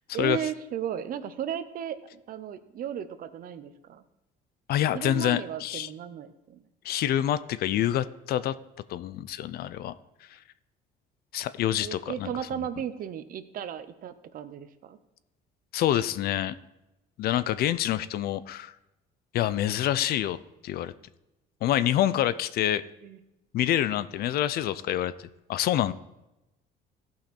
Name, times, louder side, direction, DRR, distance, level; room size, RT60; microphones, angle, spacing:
voice 1, 0.1-4.0 4.9-6.7 11.8-15.0 23.0-23.2, right 9 dB, 55° right, 12 dB, 0.7 m, -35 dB
voice 2, 4.7-5.9 6.8-8.5 8.9-9.9 10.3-10.4 11.3-12.3 15.7-16.6 17.2-18.7 19.3-20.4 20.6-20.9 21.6-22.8 23.5-25.9, left 12 dB, 65° left, 16 dB, 0.5 m, -27 dB
15.5 x 5.7 x 4.3 m, 0.96 s
cardioid pair, 110°, 17 cm